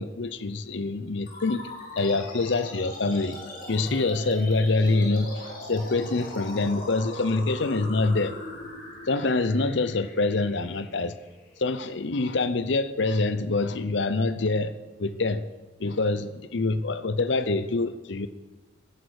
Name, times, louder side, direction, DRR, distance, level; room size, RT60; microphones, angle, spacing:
voice 1, 0.0-1.7 2.0-3.4 3.7-8.3 9.1-11.1 11.6-14.7 15.0-15.5 15.8-18.3, left 3 dB, 65° left, 14 dB, 0.7 m, -25 dB
sound 1, 1.3-12.2, left 1 dB, 45° left, 3.4 m, -40 dB
16.0 x 9.4 x 6.4 m, 1.2 s
head